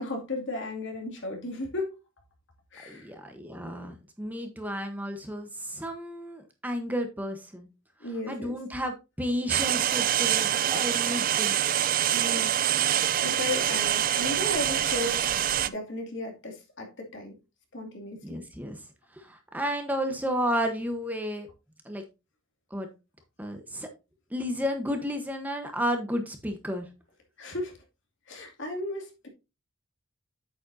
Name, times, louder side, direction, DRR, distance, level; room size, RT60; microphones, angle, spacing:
voice 1, 0.0-1.9 2.7-3.1 8.0-8.6 12.1-12.5 12.9-17.4 17.7-18.4 27.4-27.8 28.3-29.3, left 2 dB, 60° left, 2.5 m, -35 dB
voice 2, 2.9-7.7 8.3-11.6 18.2-18.8 19.2-21.5 21.8-22.0 22.7-22.9 23.4-23.9 24.3-26.9, equal, 10° right, 1.0 m, -32 dB
sound 1, 9.5-15.7, right 11 dB, 40° right, 0.4 m, -25 dB
8.6 x 7.6 x 2.7 m
head